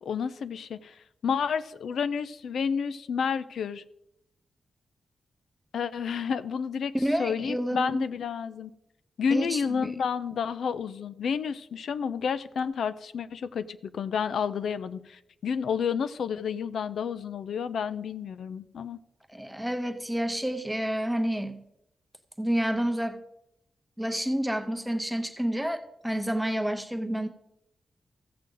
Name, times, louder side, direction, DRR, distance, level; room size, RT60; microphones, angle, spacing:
voice 1, 0.0-3.8 5.7-8.7 9.2-19.0, left 6 dB, 80° left, 0.4 m, -30 dB
voice 2, 7.0-8.1 9.3-9.9 19.3-21.6 22.4-23.2 24.0-27.3, equal, 5° right, 0.7 m, -29 dB
15.0 x 7.6 x 3.8 m
wide cardioid pair, 180°, 0 cm